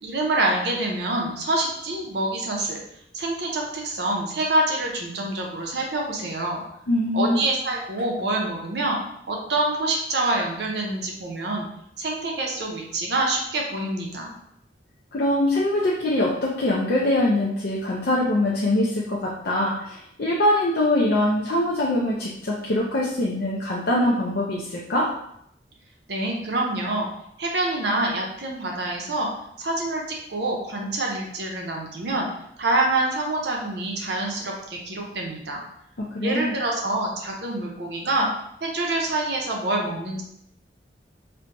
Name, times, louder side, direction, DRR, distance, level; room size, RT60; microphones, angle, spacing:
voice 1, 0.0-2.8 3.1-6.6 7.1-9.0 9.3-11.7 12.0-14.3 26.1-27.1 27.4-29.3 29.6-32.3 32.6-35.6 36.2-38.3 38.6-40.2, right 2 dB, 65° right, 0 dB, 0.7 m, -26 dB
voice 2, 6.9-7.4 15.1-25.1 36.0-36.5, left 1 dB, 55° left, -4 dB, 0.5 m, -23 dB
4.4 x 2.2 x 2.6 m, 0.76 s
head